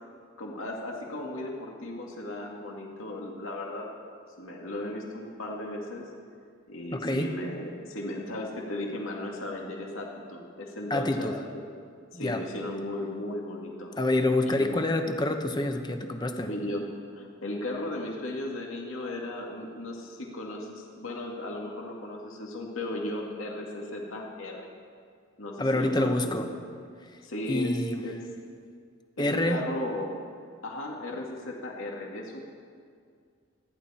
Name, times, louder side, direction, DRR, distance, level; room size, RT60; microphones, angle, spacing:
voice 1, 0.4-3.9 4.4-6.1 6.7-11.3 12.1-14.0 14.5-14.7 16.5-16.8 17.1-24.7 25.4-26.6 27.2-27.8 28.0-28.2 29.2-30.1 30.6-32.4, left 1 dB, 75° left, -1 dB, 2.2 m, -36 dB
voice 2, 6.9-7.3 10.9-11.3 12.1-12.5 14.0-16.5 25.6-26.5 27.5-28.0 29.2-29.6, left 1 dB, 20° left, 5 dB, 1.0 m, -27 dB
28.0 x 11.0 x 4.4 m, 2.2 s
head